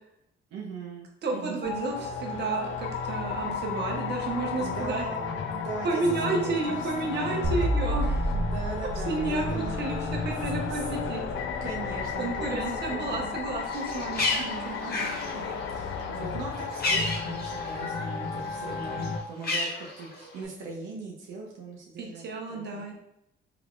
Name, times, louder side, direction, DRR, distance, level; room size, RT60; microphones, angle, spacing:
voice 1, 0.5-1.6 4.6-7.1 8.3-9.8 10.7-10.9 11.6-13.4 14.3-22.9, right 4 dB, 90° right, -2 dB, 0.7 m, -40 dB
voice 2, 1.2-5.0 5.8-8.3 9.1-11.2 12.2-14.8 22.0-22.9, right 3 dB, 60° right, 0 dB, 1.0 m, -31 dB
sound 1, 1.6-19.2, left 5 dB, 80° left, 0.5 m, -33 dB
sound 2, 7.4-14.6, equal, 30° right, 0.5 m, -33 dB
Bird, 13.6-18.2 18.5-20.4, left 2 dB, 50° left, 1.1 m, -32 dB
3.4 x 3.4 x 2.4 m, 0.82 s
cardioid pair, 90°, 20 cm